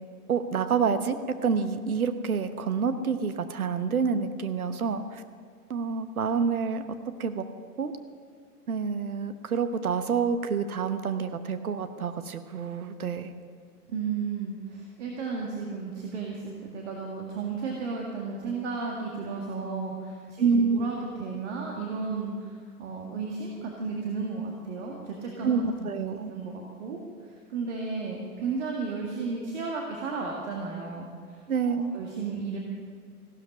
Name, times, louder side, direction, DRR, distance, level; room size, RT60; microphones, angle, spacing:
voice 1, 0.3-5.2 5.7-6.8 7.2-7.5 7.8-7.9 8.7-13.3 20.4-20.8 25.4-26.3 31.5-31.9, right 5 dB, 65° right, 10 dB, 1.1 m, -28 dB
voice 2, 13.9-25.5 25.8-25.9 26.3-32.6, right 4 dB, 50° right, -1 dB, 2.0 m, -34 dB
15.5 x 12.0 x 5.4 m, 2.1 s
figure-of-eight pair, 105°, 46 cm